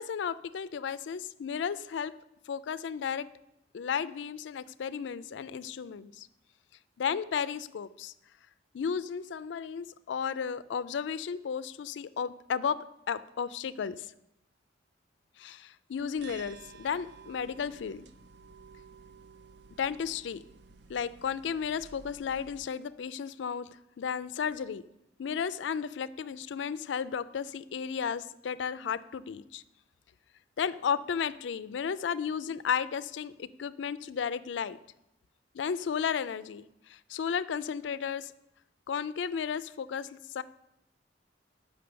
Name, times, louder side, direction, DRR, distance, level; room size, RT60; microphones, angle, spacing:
voice 1, 0.0-2.1 2.5-3.3 3.7-6.3 7.0-8.1 8.7-14.1 15.4-18.1 19.8-20.4 20.9-23.7 24.0-24.8 25.2-29.6 30.6-34.8 35.5-38.3 38.9-40.4, left 7 dB, 75° left, 16 dB, 0.4 m, -34 dB
sound 1, 16.2-22.7, right 5 dB, 65° right, 0.4 m, -53 dB
6.6 x 5.7 x 6.9 m, 0.86 s
head